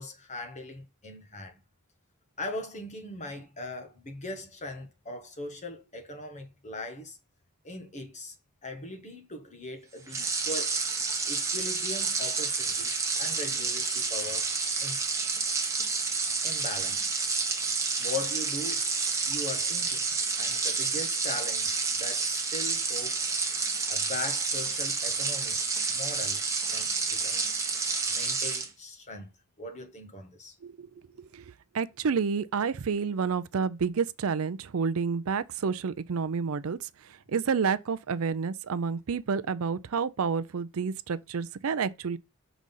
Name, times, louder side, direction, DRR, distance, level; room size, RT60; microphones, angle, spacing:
voice 1, 0.0-1.6 2.4-7.2 7.6-8.3 8.6-10.8 11.3-14.5 14.8-15.0 16.4-17.1 18.0-18.9 19.3-20.1 20.4-23.3 23.9-25.6 25.9-26.4 26.7-27.6 28.1-30.5 31.0-31.1, left 2 dB, 30° left, 1.4 m, -40 dB
sound 1, 10.1-28.7, right 4 dB, 15° right, 1.1 m, -29 dB
voice 2, 31.7-36.9 37.3-42.2, right 5 dB, 65° right, 0.5 m, -29 dB
6.2 x 4.0 x 5.4 m
head